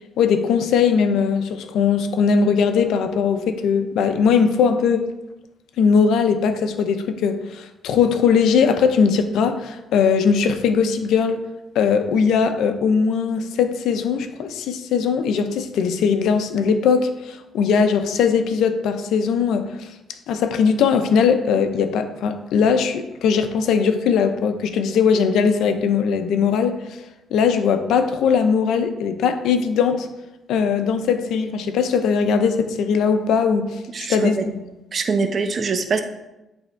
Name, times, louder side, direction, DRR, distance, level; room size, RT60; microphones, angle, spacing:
voice 1, 0.2-5.1 5.8-11.4 11.7-19.9 20.3-26.8 27.3-30.1 30.5-33.8 34.1-34.6, left 6 dB, 80° left, 9 dB, 0.7 m, -19 dB
voice 2, 33.9-34.5 34.9-36.0, right 4 dB, 45° right, 7 dB, 0.8 m, -23 dB
10.5 x 3.6 x 4.5 m, 0.97 s
cardioid pair, 90°, 0 cm